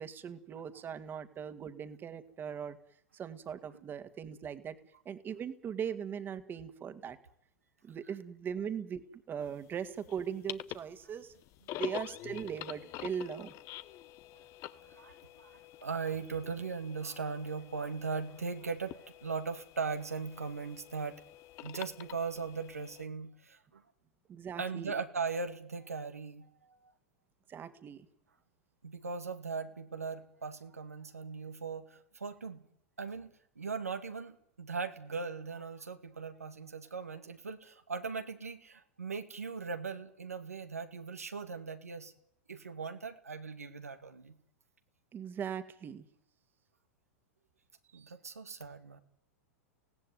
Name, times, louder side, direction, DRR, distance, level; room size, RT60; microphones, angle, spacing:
voice 1, 0.0-2.8 3.1-4.8 5.1-7.2 7.8-11.3 11.7-13.5 24.3-24.9 27.5-28.1 45.1-46.1 47.9-48.1, right 7 dB, 25° right, 11 dB, 2.1 m, -40 dB
sound 1, 9.5-23.1, left 15 dB, 40° left, 1.0 m, -47 dB
voice 2, 14.7-21.2 21.6-23.8 24.6-26.9 28.8-32.6 33.0-42.1 42.5-44.3 47.9-49.0, right 5 dB, 85° right, 7 dB, 2.1 m, -39 dB
24.5 x 17.5 x 9.4 m, 0.75 s
figure-of-eight pair, 95°, 8 cm